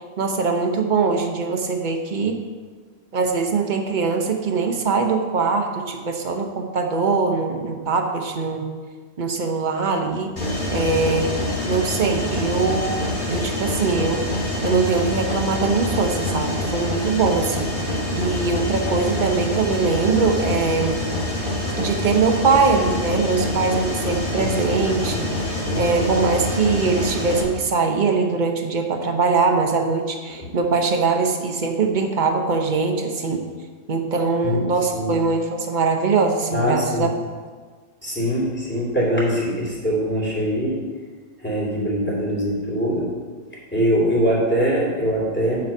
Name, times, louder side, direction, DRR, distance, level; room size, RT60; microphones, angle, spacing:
voice 1, 0.2-2.4 3.1-8.7 9.2-10.3 10.7-11.4 11.6-13.0 13.3-14.3 14.6-17.7 18.1-21.0 21.8-33.4 33.9-37.1, right 4 dB, 45° right, 3 dB, 1.0 m, -22 dB
Mechanisms, 10.4-27.4, left 1 dB, 45° left, 2.0 m, -26 dB
voice 2, 36.5-37.1 38.0-40.8 41.4-43.1 43.7-45.6, equal, 10° left, -6 dB, 2.8 m, -22 dB
7.0 x 5.4 x 7.0 m, 1.5 s
omnidirectional pair, 1.2 m